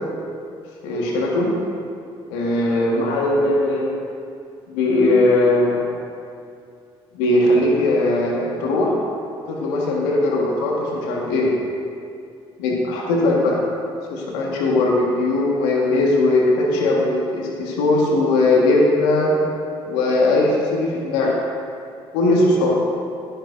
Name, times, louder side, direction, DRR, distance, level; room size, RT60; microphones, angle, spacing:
voice 1, 0.8-1.5 2.3-3.8 4.7-5.8 7.1-8.9 9.5-11.5 12.6-13.6 14.1-19.3 19.8-21.3 22.1-22.7, left 2 dB, 80° left, -3 dB, 1.5 m, -19 dB
12.5 x 10.0 x 2.6 m, 2.4 s
hypercardioid pair, 50°, 13 cm